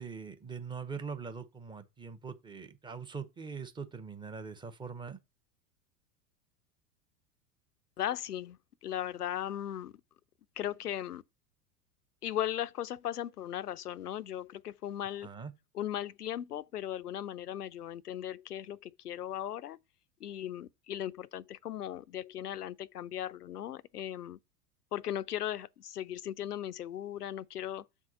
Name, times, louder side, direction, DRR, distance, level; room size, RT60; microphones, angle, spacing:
voice 1, 0.0-5.2 15.2-15.5, right 5 dB, 10° right, 0.8 m, -42 dB
voice 2, 8.0-9.9 10.6-11.2 12.2-15.3 15.7-19.8 20.2-24.4 24.9-27.9, left 11 dB, 80° left, 0.6 m, -37 dB
7.4 x 3.6 x 5.7 m
figure-of-eight pair, 80°, 46 cm